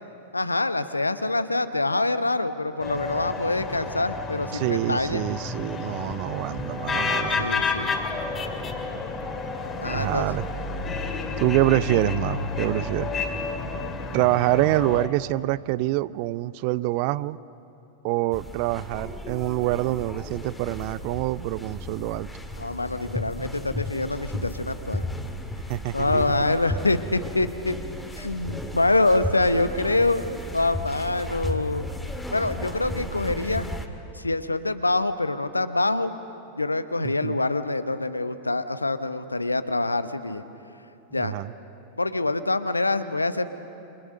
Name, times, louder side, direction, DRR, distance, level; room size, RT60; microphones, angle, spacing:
voice 1, 0.3-5.2 7.4-7.9 9.8-10.3 22.6-25.0 25.9-27.8 28.2-30.3 30.5-31.9 32.3-33.7 34.1-36.1 36.6-40.4 41.1-41.3 42.0-43.5, left 2 dB, 80° left, 12 dB, 1.0 m, -25 dB
sound 1, 2.8-15.1, left 4 dB, 20° left, 2.8 m, -30 dB
voice 2, 4.5-7.6 9.9-10.4 11.4-13.1 14.1-17.4 18.0-22.3 25.7-26.6 37.0-37.4 41.2-41.5, right 18 dB, 45° right, 19 dB, 0.5 m, -26 dB
sound 2, 18.3-33.9, left 1 dB, 5° left, 2.1 m, -34 dB
29.0 x 26.0 x 6.6 m, 2.8 s
figure-of-eight pair, 90°, 0 cm